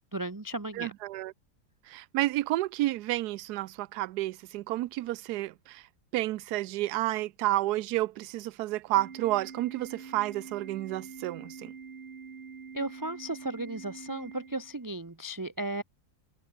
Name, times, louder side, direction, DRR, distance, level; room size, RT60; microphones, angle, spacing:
voice 1, 0.1-0.9 12.7-15.8, right 2 dB, 15° right, 0.9 m, -35 dB
voice 2, 0.8-1.3 1.9-5.8 6.1-11.7, right 16 dB, 75° right, 1.1 m, -30 dB
Organ, 9.0-15.0, right 5 dB, 40° right, 1.6 m, -46 dB
omnidirectional pair, 1.7 m